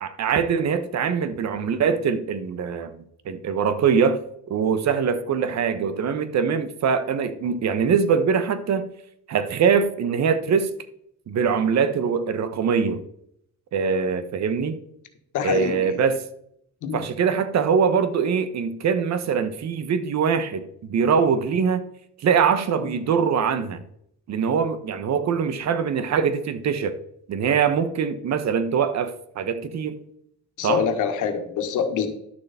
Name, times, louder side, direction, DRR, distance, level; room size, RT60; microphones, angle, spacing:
voice 1, 0.0-4.2 4.5-8.9 9.3-10.7 11.3-13.0 13.7-14.8 15.4-16.2 16.9-21.9 22.2-23.8 24.3-26.9 27.3-30.0 30.6-30.8, right 6 dB, 60° right, 12 dB, 1.1 m, -23 dB
voice 2, 15.3-16.0 16.8-17.0 30.6-32.1, left 7 dB, 90° left, 6 dB, 1.6 m, -25 dB
11.0 x 6.7 x 4.3 m, 0.73 s
cardioid pair, 90°, 30 cm